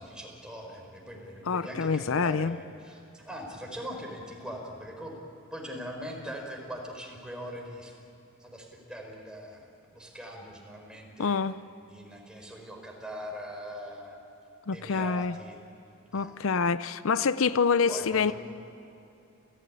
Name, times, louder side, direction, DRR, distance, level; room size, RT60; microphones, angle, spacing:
voice 1, 0.0-5.2 5.5-7.9 8.4-11.4 11.9-14.2 14.7-15.6 16.1-16.3 17.9-18.3, equal, 5° right, 0 dB, 4.6 m, -41 dB
voice 2, 1.5-2.6 11.2-11.6 14.7-15.4 16.1-18.3, left 5 dB, 80° left, 14 dB, 0.6 m, -26 dB
29.0 x 16.0 x 9.7 m, 2.9 s
head